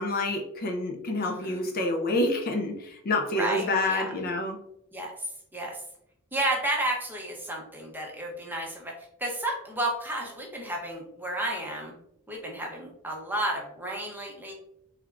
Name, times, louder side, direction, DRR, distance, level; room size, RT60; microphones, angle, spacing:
voice 1, 0.0-4.6, left 2 dB, 40° left, 2 dB, 0.4 m, -28 dB
voice 2, 1.2-1.7 3.3-4.1 4.9-5.1 5.5-5.8 6.3-8.9 9.2-11.9 12.3-14.5, right 1 dB, 10° right, -1 dB, 0.6 m, -32 dB
3.5 x 3.3 x 2.3 m, 0.76 s
head